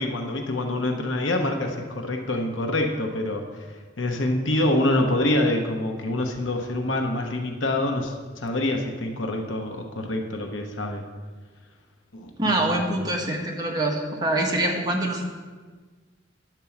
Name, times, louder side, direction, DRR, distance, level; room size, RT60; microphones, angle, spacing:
voice 1, 0.0-3.7 4.0-11.0 12.1-12.7, left 1 dB, 70° left, 3 dB, 1.0 m, -26 dB
voice 2, 12.4-15.3, right 1 dB, 20° right, -1 dB, 1.3 m, -25 dB
10.0 x 4.5 x 7.2 m, 1.4 s
head